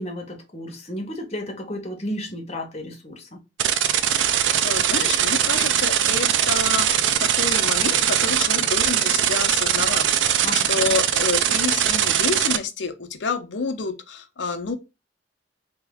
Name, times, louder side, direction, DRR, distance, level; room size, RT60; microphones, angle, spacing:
voice 1, 0.0-3.3 10.4-11.0, left 1 dB, 35° left, 1.1 m, -33 dB
sound 1, 3.6-12.6, right 9 dB, 85° right, 0.4 m, -21 dB
voice 2, 4.2-14.8, left 4 dB, 75° left, 0.6 m, -29 dB
3.4 x 3.0 x 3.5 m
head